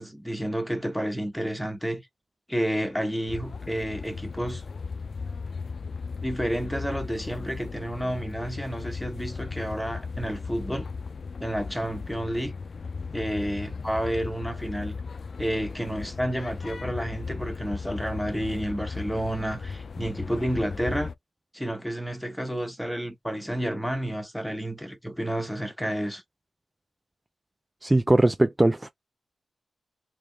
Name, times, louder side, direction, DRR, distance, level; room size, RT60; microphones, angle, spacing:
voice 1, 0.0-2.0 2.5-4.6 6.2-10.9 11.4-12.5 13.1-15.0 15.4-21.1 21.5-26.2, equal, 5° left, 1.1 m, -30 dB
sound 1, 3.3-21.2, left 4 dB, 55° left, 0.4 m, -36 dB
voice 2, 27.8-28.9, right 1 dB, 15° right, 0.4 m, -20 dB
3.3 x 2.9 x 3.3 m
wide cardioid pair, 90°, 0 cm